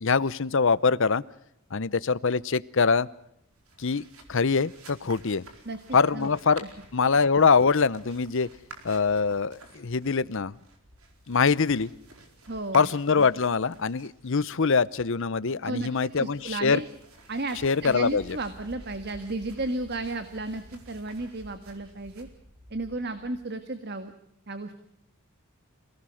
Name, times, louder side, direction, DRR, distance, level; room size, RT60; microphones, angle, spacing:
voice 1, 0.0-1.2 1.7-3.1 3.8-4.0 4.3-5.4 5.9-6.6 6.9-8.5 8.8-10.5 11.3-11.9 12.7-16.8 17.6-18.4, left 5 dB, 60° left, 18 dB, 0.7 m, -23 dB
sound 1, 3.5-23.4, right 2 dB, 75° right, 4.5 m, -51 dB
voice 2, 5.6-6.3 6.6-6.7 12.5-12.9 15.6-16.8 17.3-22.3 22.7-24.1 24.5-24.7, right 2 dB, 50° right, 9 dB, 1.7 m, -34 dB
27.5 x 18.0 x 6.4 m, 0.78 s
head